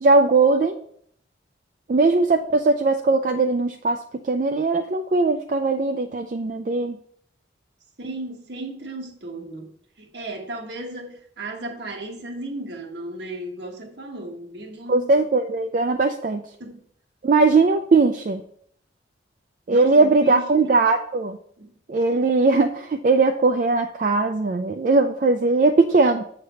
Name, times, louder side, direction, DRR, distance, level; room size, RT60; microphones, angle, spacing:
voice 1, 0.0-0.8 1.9-7.0 14.9-16.5 17.2-18.4 19.7-21.4 21.9-26.2, right 3 dB, 45° right, 0.3 m, -19 dB
voice 2, 8.0-15.1 16.6-16.8 19.7-20.6 21.6-21.7, right 1 dB, 65° right, 1.3 m, -35 dB
8.1 x 3.3 x 5.6 m
head